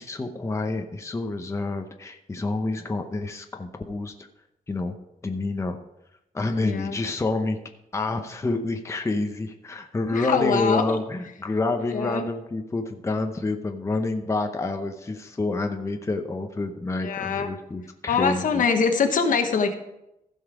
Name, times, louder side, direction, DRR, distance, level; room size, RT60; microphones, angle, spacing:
voice 1, 0.0-4.3 4.7-4.9 5.2-5.8 6.3-7.6 7.9-18.6, left 3 dB, 20° left, 5 dB, 0.8 m, -28 dB
voice 2, 6.6-7.0 10.1-10.8 11.9-12.2 17.0-17.5 18.1-19.7, left 5 dB, 65° left, 6 dB, 1.2 m, -23 dB
15.0 x 5.5 x 4.9 m, 0.88 s
wide cardioid pair, 130°, 15 cm